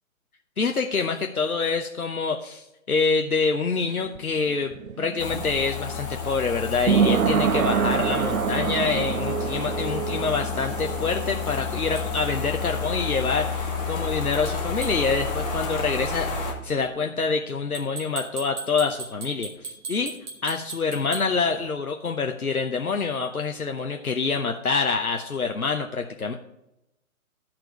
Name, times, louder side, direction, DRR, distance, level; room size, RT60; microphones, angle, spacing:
voice 1, 0.6-20.1 20.4-26.3, left 4 dB, 80° left, 3 dB, 0.9 m, -26 dB
sound 1, 3.8-15.3 15.6-15.7, right 7 dB, 75° right, 0.5 m, -28 dB
sound 2, 5.2-16.5, left 5 dB, 25° left, 1.7 m, -31 dB
sound 3, 12.0-12.1 14.8-15.0 17.7-21.3, right 4 dB, 30° right, 1.9 m, -37 dB
13.5 x 4.5 x 4.9 m, 0.86 s
figure-of-eight pair, 140°, 43 cm